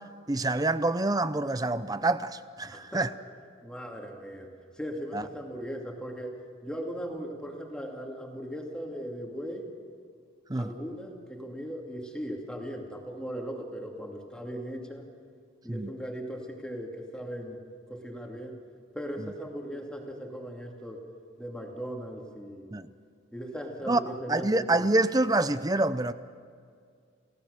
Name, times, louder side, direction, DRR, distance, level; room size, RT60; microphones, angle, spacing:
voice 1, 0.3-3.1 5.1-5.2 10.5-10.7 15.7-15.9 22.7-22.9 23.9-24.0 24.3-26.1, right 2 dB, 20° right, 0.6 m, -26 dB
voice 2, 2.6-3.1 3.6-9.7 10.5-15.1 15.6-17.6 17.9-18.6 18.9-21.0 21.4-22.7 23.3-24.9, equal, 5° left, 2.5 m, -38 dB
29.5 x 16.5 x 6.7 m
head